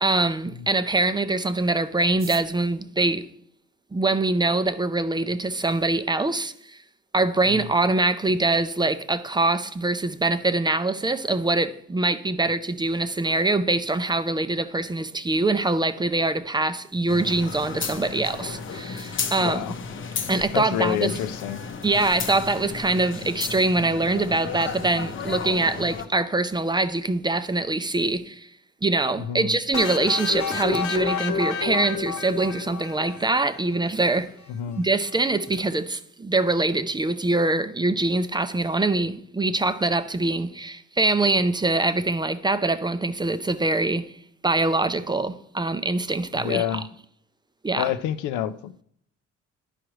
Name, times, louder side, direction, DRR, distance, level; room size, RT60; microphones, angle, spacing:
voice 1, 0.0-3.3 3.9-6.8 7.1-19.8 20.3-21.2 21.8-28.5 28.8-34.3 34.8-44.1 44.4-46.8 47.6-47.9, right 2 dB, 15° right, 0.4 m, -24 dB
sound 1, 2.0-4.3 5.1-5.2 5.4-5.5 5.8-6.2 6.6-6.7 6.8-7.3 7.6-7.8 8.1-8.4, right 6 dB, 45° right, 0.8 m, -46 dB
sound 2, 17.1-26.1, left 5 dB, 40° left, 0.7 m, -34 dB
voice 2, 19.4-19.8 20.5-21.6 29.2-29.5 34.5-34.8 46.4-46.9 47.8-48.8, left 10 dB, 90° left, 0.5 m, -28 dB
sound 3, 29.7-33.5, left 6 dB, 70° left, 1.0 m, -29 dB
11.5 x 4.9 x 3.1 m
cardioid pair, 90°, 30 cm